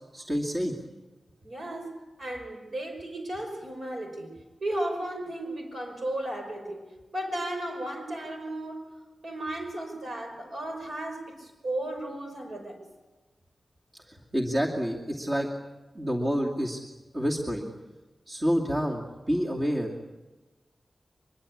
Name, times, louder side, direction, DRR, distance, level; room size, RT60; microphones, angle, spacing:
voice 1, 0.1-0.7 13.9-15.5 15.9-16.8 17.1-17.7 18.3-20.1, equal, 30° right, -1 dB, 2.5 m, -28 dB
voice 2, 1.4-6.8 7.1-9.0 9.2-12.8, right 1 dB, 65° right, 3 dB, 5.7 m, -35 dB
23.5 x 23.0 x 8.7 m, 1.2 s
wide cardioid pair, 100°, 0 cm